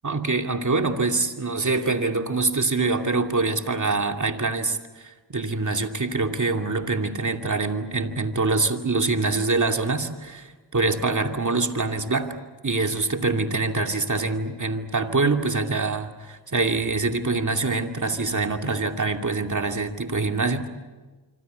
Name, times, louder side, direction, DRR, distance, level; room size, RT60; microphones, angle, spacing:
voice 1, 0.0-12.3 12.6-20.7, right 3 dB, 40° right, 4 dB, 2.6 m, -25 dB
26.0 x 25.0 x 8.1 m, 1.3 s
cardioid pair, 55°, 46 cm